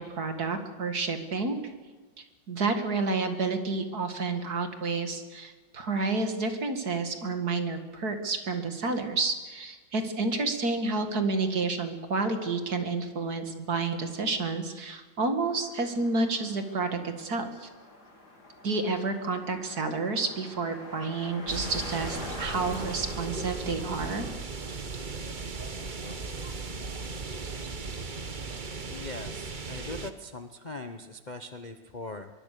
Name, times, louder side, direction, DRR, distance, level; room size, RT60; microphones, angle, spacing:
voice 1, 0.1-1.6 2.5-17.7 18.6-24.3, right 3 dB, 55° right, 6 dB, 2.6 m, -30 dB
sound 1, 15.4-24.4, left 2 dB, 55° left, 4.0 m, -45 dB
sound 2, 21.5-30.1, right 4 dB, 30° right, 1.1 m, -37 dB
voice 2, 28.9-32.3, left 2 dB, 35° left, 7 dB, 0.8 m, -41 dB
24.5 x 22.5 x 6.8 m, 1.3 s
omnidirectional pair, 2.0 m